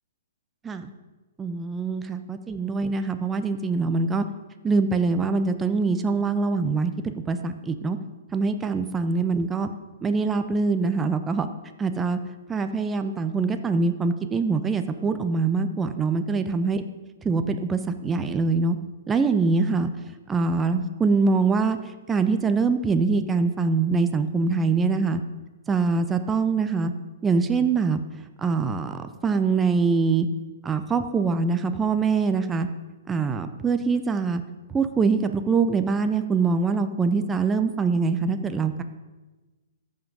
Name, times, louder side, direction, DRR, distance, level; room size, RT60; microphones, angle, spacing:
voice 1, 1.4-4.2 4.6-8.0 8.3-9.7 10.0-11.5 11.8-12.2 12.5-16.8 17.2-18.8 19.1-19.9 20.3-21.8 22.1-25.2 25.7-26.9 27.2-28.0 28.4-30.3 30.6-32.7 33.1-34.4 34.7-38.8, right 4 dB, 10° right, 8 dB, 0.5 m, -24 dB
14.0 x 5.8 x 5.4 m, 1.2 s
hypercardioid pair, 150°, 0 cm